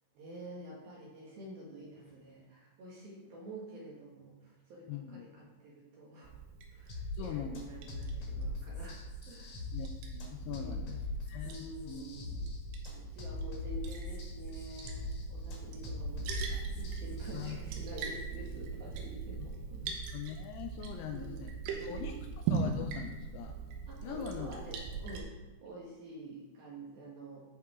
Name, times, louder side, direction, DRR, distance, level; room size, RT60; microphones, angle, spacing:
voice 1, 0.1-6.4 6.7-9.6 10.5-10.8 11.4-12.5 12.9-19.9 20.9-21.4 21.7-22.3 23.9-25.3 25.6-27.4, right 1 dB, 65° right, -4 dB, 2.5 m, -48 dB
voice 2, 4.9-5.3 7.1-7.7 9.7-11.0 11.3-11.6 11.9-12.0 17.3-17.6 19.8-21.5 21.8-22.1 22.5-23.5 24.0-24.5, left 9 dB, 85° left, 4 dB, 2.6 m, -42 dB
Liquid, 6.2-25.2, right 5 dB, 85° right, 3.5 m, -41 dB
sound 1, 6.9-17.5, left 2 dB, 55° left, 2.0 m, -41 dB
13.5 x 4.8 x 3.6 m, 1.1 s
omnidirectional pair, 5.7 m